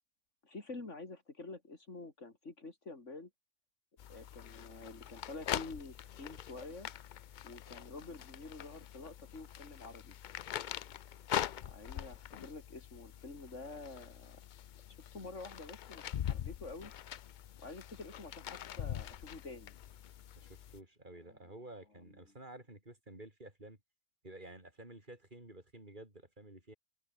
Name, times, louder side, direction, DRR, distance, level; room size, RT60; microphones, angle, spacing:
voice 1, 0.4-3.3 4.1-6.9 7.4-10.2 11.6-14.4 15.1-16.9 17.6-19.8 21.2-21.5 22.0-22.4, left 3 dB, 75° left, 3.9 m, -48 dB
sound 1, 4.0-20.8, left 10 dB, 60° left, 0.5 m, -43 dB
voice 2, 20.4-23.8 24.2-26.7, right 1 dB, 40° right, 5.9 m, -52 dB
omnidirectional pair, 1.3 m